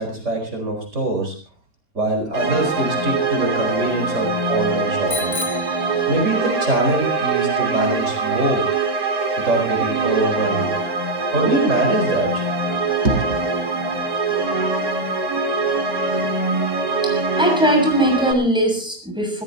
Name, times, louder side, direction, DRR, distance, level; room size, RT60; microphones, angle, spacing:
voice 1, 0.0-1.4 1.9-5.4 6.1-8.6 9.4-10.7 11.3-12.4 13.0-13.4, right 2 dB, 55° right, 3 dB, 5.3 m, -23 dB
sound 1, 2.3-18.3, right 3 dB, 75° right, 3.8 m, -23 dB
Bicycle bell, 5.1-6.6, left 2 dB, 30° left, 2.5 m, -32 dB
voice 2, 17.0-19.4, equal, 5° right, 3 dB, 6.9 m, -20 dB
26.0 x 16.5 x 2.8 m, 0.35 s
omnidirectional pair, 1.5 m